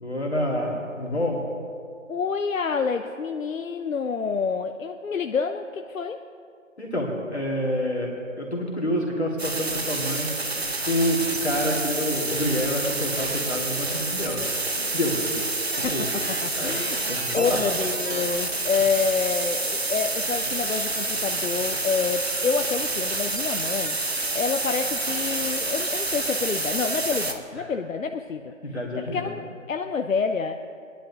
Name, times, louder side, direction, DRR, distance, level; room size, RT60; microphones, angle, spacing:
voice 1, 0.0-1.4 6.8-10.3 10.8-14.4 14.7-15.2 15.8-16.1 16.5-16.8 17.1-17.6 27.6-27.7 28.6-29.3, equal, 55° left, -2 dB, 1.9 m, -27 dB
voice 2, 2.1-6.2 15.6-16.1 16.4-17.0 17.3-28.5 29.0-30.5, left 5 dB, 80° left, 6 dB, 0.6 m, -28 dB
sound 1, 9.4-27.3, right 2 dB, 50° right, 0.8 m, -28 dB
22.5 x 10.0 x 2.8 m, 2.3 s
figure-of-eight pair, 175°, 39 cm